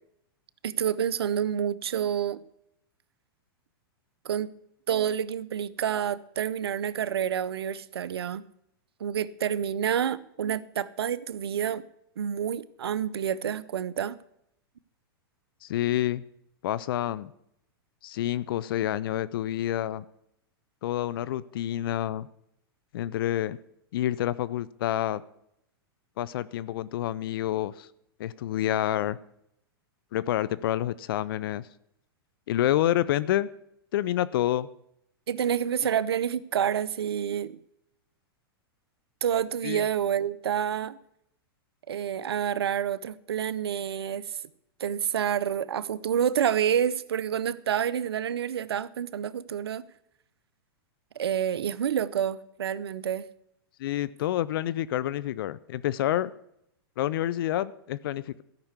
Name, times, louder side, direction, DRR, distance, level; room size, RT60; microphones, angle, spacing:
voice 1, 0.6-2.4 4.2-4.5 4.9-8.4 9.0-11.8 12.2-14.2 35.3-37.6 39.2-41.0 41.9-44.4 44.8-49.8 51.1-53.3, right 9 dB, 85° right, 0.6 m, -28 dB
voice 2, 15.6-16.2 16.6-17.3 18.0-20.1 20.8-22.3 22.9-23.6 23.9-25.2 26.2-27.9 28.2-29.2 30.1-31.6 32.5-33.5 33.9-34.7 39.6-39.8 53.8-56.3 57.0-58.4, left 13 dB, 65° left, 0.5 m, -28 dB
13.5 x 5.9 x 8.1 m
hypercardioid pair, 120°, 13 cm